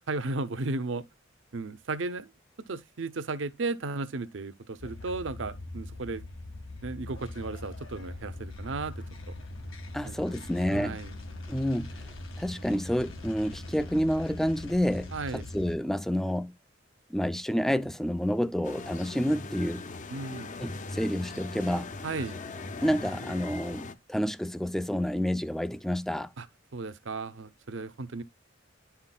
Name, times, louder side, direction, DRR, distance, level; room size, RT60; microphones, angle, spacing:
voice 1, 0.1-1.0 1.5-2.3 2.7-6.2 6.8-9.3 10.0-10.4 10.7-11.1 15.1-15.4 20.1-20.5 22.0-22.4 26.4-26.5 26.7-28.2, right 3 dB, 70° right, 0.7 m, -35 dB
sound 1, 4.8-15.8, left 2 dB, 85° left, 1.7 m, -41 dB
voice 2, 9.9-11.0 11.5-16.5 17.1-19.9 20.6-21.9 22.8-26.3, equal, ahead, 0.3 m, -29 dB
sound 2, 18.6-23.9, left 3 dB, 40° left, 0.6 m, -40 dB
10.5 x 5.7 x 2.3 m
head